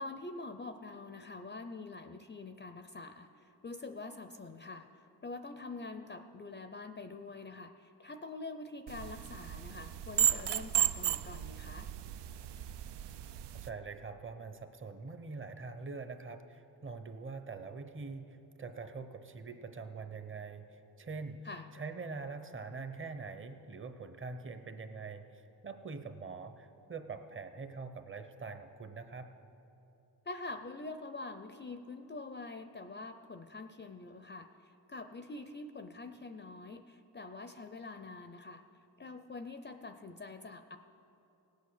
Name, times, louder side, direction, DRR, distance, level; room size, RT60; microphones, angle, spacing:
voice 1, 0.0-11.9 21.4-21.7 30.3-38.6 39.0-40.8, left 3 dB, 25° left, 8 dB, 0.5 m, -45 dB
sound 1, 8.9-13.7, right 10 dB, 75° right, 0.6 m, -34 dB
voice 2, 13.6-20.6 21.0-21.4 21.7-29.3, right 4 dB, 30° right, 9 dB, 1.0 m, -44 dB
17.0 x 8.3 x 6.6 m, 2.8 s
cardioid pair, 85°, 42 cm